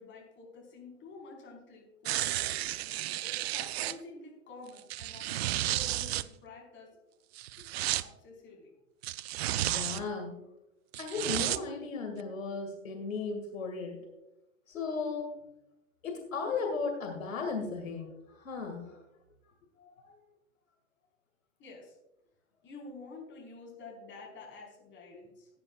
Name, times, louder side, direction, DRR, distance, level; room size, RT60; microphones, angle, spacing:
voice 1, 0.0-2.5 3.2-6.9 8.0-8.7 21.6-22.0 22.6-25.6, left 3 dB, 30° left, 0 dB, 4.7 m, -49 dB
sound 1, 2.1-4.0 4.8-6.3 7.4-8.1 9.0-10.0 10.9-11.6 12.2-12.3, right 15 dB, 50° right, 0.5 m, -32 dB
voice 2, 9.6-10.4 11.0-14.0 14.7-15.4 16.0-19.0 19.8-20.1 25.1-25.2, left 4 dB, 80° left, 3 dB, 2.2 m, -36 dB
17.0 x 9.7 x 2.4 m, 0.91 s
hypercardioid pair, 105°, 39 cm